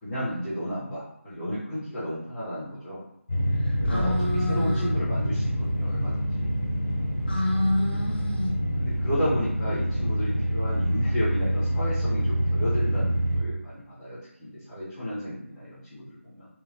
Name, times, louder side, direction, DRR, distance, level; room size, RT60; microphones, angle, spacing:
voice 1, 0.0-3.0 3.8-6.5 8.8-16.5, equal, 5° left, -12 dB, 0.6 m, -33 dB
sound 1, 3.3-13.4, equal, 70° left, 0.9 m, -26 dB
voice 2, 3.6-5.0 7.3-8.5, left 1 dB, 45° left, -1 dB, 0.7 m, -28 dB
sound 2, 3.7-9.9, equal, 25° right, 1.0 m, -43 dB
3.1 x 2.3 x 2.5 m, 0.80 s
figure-of-eight pair, 165°, 8 cm